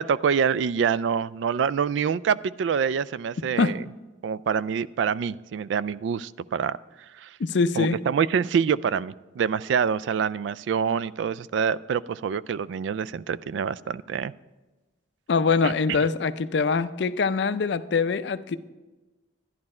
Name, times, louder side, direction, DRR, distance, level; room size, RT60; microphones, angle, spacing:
voice 1, 0.0-3.8 4.2-6.8 7.2-7.4 7.8-14.3 15.6-15.7, right 7 dB, 75° right, 19 dB, 0.3 m, -26 dB
voice 2, 7.4-8.0 15.3-18.6, left 4 dB, 65° left, 14 dB, 0.4 m, -23 dB
12.0 x 10.5 x 4.3 m, 1.2 s
head